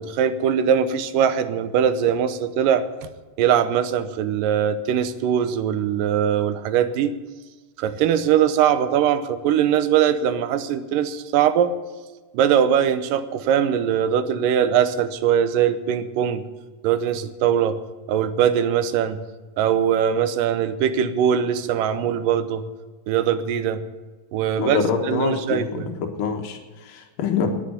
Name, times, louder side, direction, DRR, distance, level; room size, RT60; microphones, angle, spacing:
voice 1, 0.0-2.9 3.4-7.2 7.8-11.7 12.3-16.4 16.8-17.8 18.1-19.2 19.6-22.6 23.1-23.8 24.3-25.9, right 9 dB, 90° right, 11 dB, 2.5 m, -21 dB
voice 2, 24.5-27.5, left 5 dB, 85° left, 4 dB, 3.0 m, -25 dB
11.0 x 10.0 x 9.5 m, 1.2 s
omnidirectional pair, 3.8 m